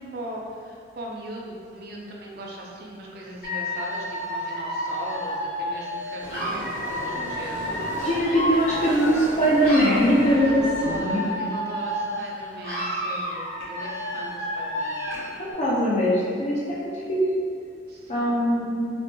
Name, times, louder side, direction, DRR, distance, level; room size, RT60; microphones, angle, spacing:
voice 1, 0.0-7.8 10.3-15.1 15.5-15.8 17.9-18.5, right 1 dB, 55° right, -2 dB, 0.4 m, -38 dB
Dog / Alarm, 3.4-9.3 9.6-12.3 12.6-15.4, equal, 55° left, 0.7 m, -30 dB
sound 1, 6.2-11.3, equal, 85° left, 0.8 m, -36 dB
voice 2, 7.7-11.5 15.4-17.2 18.1-18.9, equal, 35° left, -7 dB, 0.3 m, -22 dB
2.1 x 2.1 x 3.0 m, 2.3 s
head